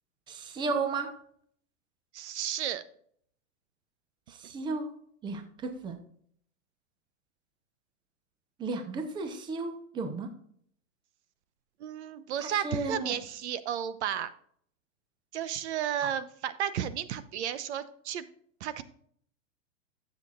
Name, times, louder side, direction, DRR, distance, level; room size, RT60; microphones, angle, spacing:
voice 1, 0.3-1.1 4.3-4.9 5.2-6.0 8.6-10.3 12.4-13.2 16.0-16.1, right 3 dB, 10° right, 7 dB, 0.8 m, -34 dB
voice 2, 2.1-2.8 11.8-14.3 15.3-18.2 18.6-18.8, right 9 dB, 60° right, 14 dB, 1.0 m, -33 dB
12.0 x 7.5 x 2.5 m, 0.62 s
supercardioid pair, 160°, 39 cm